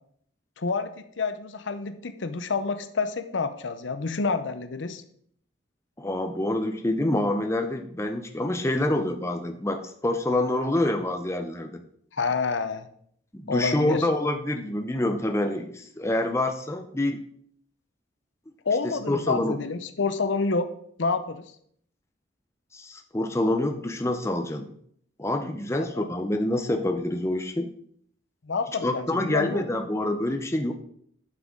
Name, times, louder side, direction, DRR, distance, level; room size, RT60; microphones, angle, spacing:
voice 1, 0.6-5.0 12.1-12.9 13.5-14.0 18.6-20.7 21.0-21.5 25.8-26.1 28.4-29.6, left 4 dB, 70° left, 10 dB, 0.7 m, -28 dB
voice 2, 6.0-11.8 13.3-17.2 18.8-19.6 22.7-24.7 25.2-27.7 28.8-30.7, left 1 dB, 15° left, 5 dB, 0.6 m, -27 dB
11.0 x 6.1 x 3.7 m, 0.65 s
head